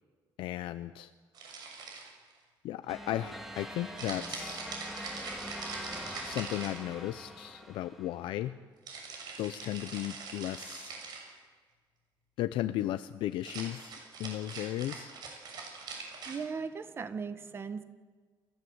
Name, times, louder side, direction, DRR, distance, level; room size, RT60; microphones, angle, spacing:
voice 1, 0.4-1.1 2.6-4.6 6.2-8.5 9.4-10.9 12.4-15.1, left 14 dB, 80° left, 10 dB, 0.8 m, -35 dB
sound 1, 1.3-2.3 4.0-7.2 8.9-11.3 13.3-16.4, right 4 dB, 55° right, 6.6 m, -43 dB
sound 2, 2.9-8.4, equal, ahead, 2.8 m, -44 dB
voice 2, 16.2-17.8, right 5 dB, 30° right, 11 dB, 1.4 m, -38 dB
28.5 x 15.5 x 8.1 m, 1.5 s
cardioid pair, 150°, 9 cm